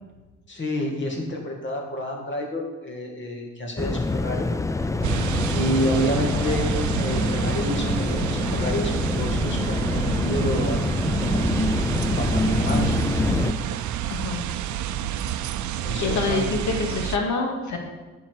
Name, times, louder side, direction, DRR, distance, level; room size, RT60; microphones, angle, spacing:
voice 1, 0.5-4.5 5.4-13.1 15.7-16.5, equal, 40° left, 1 dB, 2.2 m, -29 dB
sound 1, 3.8-13.5, left 2 dB, 10° left, 0.4 m, -25 dB
sound 2, 5.0-17.2, right 11 dB, 70° right, 0.6 m, -29 dB
voice 2, 14.1-14.4 16.0-17.8, left 3 dB, 70° left, 2 dB, 2.1 m, -26 dB
10.5 x 6.0 x 4.8 m, 1.2 s
cardioid pair, 90°, 30 cm